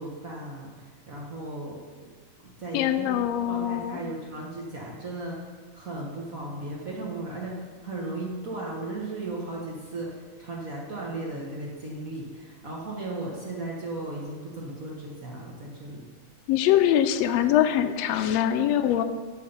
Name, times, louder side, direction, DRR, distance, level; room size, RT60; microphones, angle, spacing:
voice 1, 0.0-1.8 2.6-3.2 3.5-16.1, right 2 dB, 75° right, -3 dB, 0.7 m, -36 dB
voice 2, 2.7-4.0 16.5-19.0, left 11 dB, 85° left, 8 dB, 1.4 m, -23 dB
12.0 x 5.0 x 5.5 m, 1.5 s
omnidirectional pair, 3.6 m